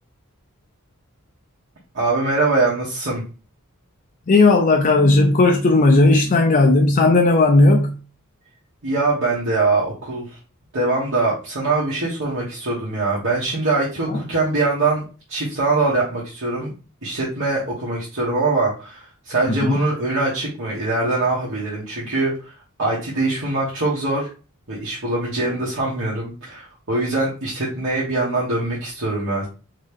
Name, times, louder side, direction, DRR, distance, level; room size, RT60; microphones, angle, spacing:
voice 1, 1.9-3.2 8.8-10.4 10.7-15.0 15.3-16.7 17.0-22.5 22.8-24.3 24.7-29.5, right 2 dB, 60° right, 1.3 m, -23 dB
voice 2, 4.3-8.0 14.1-14.2 19.6-19.9, left 2 dB, 35° left, 0.4 m, -15 dB
3.9 x 3.1 x 3.4 m
head